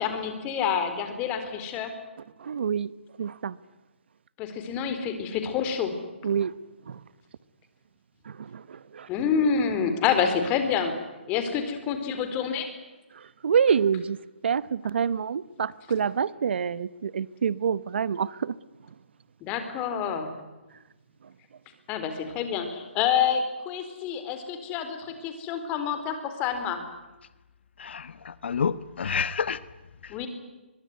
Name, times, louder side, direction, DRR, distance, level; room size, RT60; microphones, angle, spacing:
voice 1, 0.0-1.9 4.4-5.9 9.1-11.0 11.3-12.7 19.4-20.3 21.9-26.8 30.1-30.3, left 7 dB, 20° left, 8 dB, 4.1 m, -27 dB
voice 2, 2.4-2.9 3.2-3.6 6.2-6.5 6.9-7.0 8.2-9.1 13.1-14.2 14.4-18.6, right 7 dB, 65° right, 19 dB, 1.0 m, -27 dB
voice 3, 27.8-29.6 30.0-30.2, left 6 dB, 65° left, 16 dB, 1.2 m, -29 dB
23.5 x 23.0 x 9.6 m, 1.1 s
hypercardioid pair, 155°, 6 cm